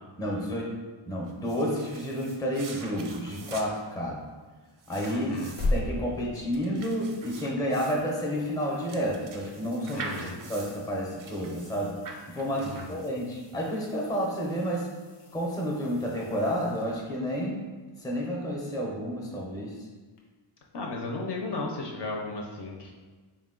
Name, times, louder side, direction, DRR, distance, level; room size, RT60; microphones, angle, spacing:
voice 1, 0.2-0.7 1.1-4.3 4.9-5.4 5.7-10.0 10.5-11.9 12.3-14.9 15.3-17.6 18.0-19.7, equal, 10° left, -3 dB, 0.5 m, -30 dB
sound 1, 1.3-13.4, right 3 dB, 45° right, 0.4 m, -45 dB
voice 2, 5.1-5.5 9.9-10.4 12.5-13.0 20.7-22.9, left 2 dB, 55° left, 0 dB, 0.6 m, -35 dB
sound 2, 5.3-7.4 7.8-17.4 20.2-20.3, left 1 dB, 90° left, 0.7 m, -39 dB
4.0 x 2.3 x 3.6 m, 1.4 s
wide cardioid pair, 140°, 50 cm